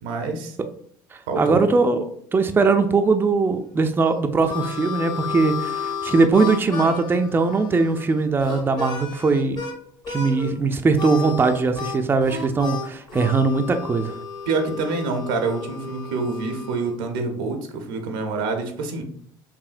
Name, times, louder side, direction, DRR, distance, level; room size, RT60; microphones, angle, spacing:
voice 1, 0.0-0.6 1.3-1.7 14.5-19.0, right 3 dB, 85° right, 5 dB, 0.8 m, -26 dB
voice 2, 1.4-2.0 2.3-9.6 10.1-14.1, right 4 dB, 20° right, 7 dB, 0.4 m, -20 dB
Harmonica, 4.0-9.8 10.0-10.6 10.9-17.0, left 6 dB, 40° left, 1.1 m, -33 dB
4.8 x 2.7 x 2.5 m, 0.65 s
supercardioid pair, 80°, 11 cm